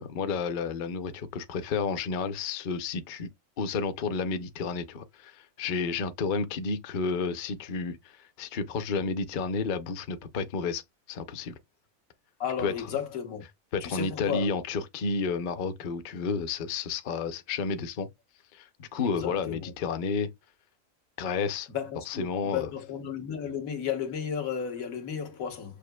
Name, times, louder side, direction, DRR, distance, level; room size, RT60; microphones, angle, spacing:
voice 1, 0.0-3.3 3.6-10.8 11.1-11.5 12.6-12.9 13.7-18.1 18.5-20.3 21.2-21.7 22.1-22.7, left 5 dB, 50° left, 0.6 m, -31 dB
voice 2, 12.4-13.4 13.8-14.5 19.0-19.7 21.7-25.8, left 8 dB, 80° left, 1.5 m, -33 dB
6.3 x 2.6 x 2.2 m
omnidirectional pair, 1.4 m